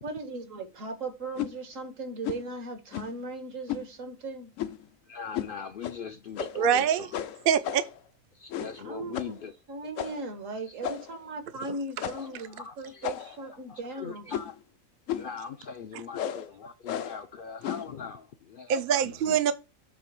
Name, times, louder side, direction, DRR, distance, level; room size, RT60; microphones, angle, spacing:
voice 1, 0.0-4.5 8.8-9.3 9.7-14.2, right 2 dB, 75° right, 1.7 m, -38 dB
sound 1, 1.4-1.6 2.2-2.5 2.9-3.2 3.7-3.9 4.6-4.9 5.3-5.5 5.8-6.0 6.4-6.7 7.1-8.0 8.5-8.8 9.1-9.4 10.0-10.3 10.8-11.2 12.0-12.4 13.0-13.5 14.3-14.6 15.1-15.4 16.1-16.5 16.9-17.2 17.6-17.9, left 10 dB, 75° left, 1.0 m, -34 dB
voice 2, 5.1-7.1 8.3-9.5 10.7-11.1 12.1-13.1 13.7-14.5 15.1-19.4, left 6 dB, 60° left, 0.6 m, -41 dB
voice 3, 6.5-7.1 7.5-7.8 18.7-19.5, right 8 dB, 55° right, 0.7 m, -24 dB
7.6 x 3.4 x 5.9 m
omnidirectional pair, 1.4 m